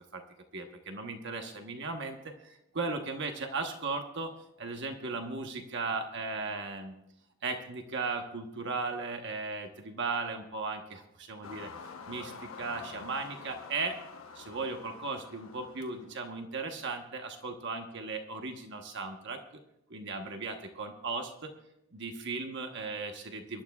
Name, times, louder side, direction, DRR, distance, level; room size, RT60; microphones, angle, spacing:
voice 1, 0.5-4.3 4.6-6.9 7.4-11.7 12.1-14.0 14.3-19.4 19.9-21.5 21.9-23.6, right 4 dB, 60° right, 4 dB, 1.1 m, -36 dB
sound 1, 11.4-16.4, left 5 dB, 90° left, 1.0 m, -47 dB
24.0 x 12.0 x 2.4 m, 0.85 s
head